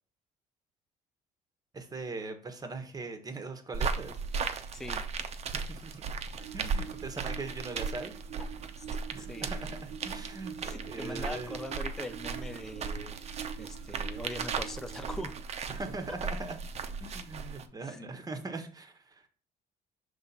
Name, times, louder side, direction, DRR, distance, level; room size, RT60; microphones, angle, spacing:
voice 1, 1.7-4.2 5.5-6.2 6.5-8.1 9.1-11.6 15.7-16.6 17.0-19.3, right 3 dB, 20° right, 6 dB, 1.1 m, -41 dB
sound 1, 3.7-17.7, right 5 dB, 40° right, 0.7 m, -37 dB
voice 2, 4.7-5.0 8.4-8.5 8.8-8.9 9.2-9.5 10.6-15.4 16.1-16.2 17.8-18.0, left 1 dB, 5° left, 8 dB, 0.4 m, -42 dB
sound 2, 6.4-15.4, right 10 dB, 85° right, 0.5 m, -46 dB
5.5 x 3.4 x 5.5 m, 0.40 s
cardioid pair, 110°, 17 cm